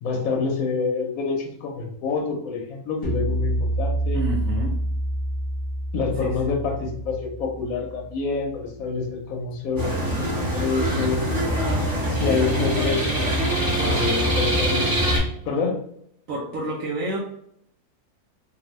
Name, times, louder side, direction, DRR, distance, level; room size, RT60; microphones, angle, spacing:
voice 1, 0.0-4.2 5.9-11.3 12.1-13.3 13.9-14.9 15.4-15.8, left 4 dB, 70° left, 1 dB, 1.0 m, -27 dB
sound 1, 3.0-8.4, right 1 dB, 45° left, 0.4 m, -27 dB
voice 2, 4.1-4.8 6.2-6.5 13.8-14.0 16.3-17.2, right 1 dB, 70° right, -3 dB, 0.9 m, -29 dB
sound 2, 9.8-15.2, equal, 25° right, 0.5 m, -23 dB
2.6 x 2.5 x 3.0 m, 0.70 s
omnidirectional pair, 1.7 m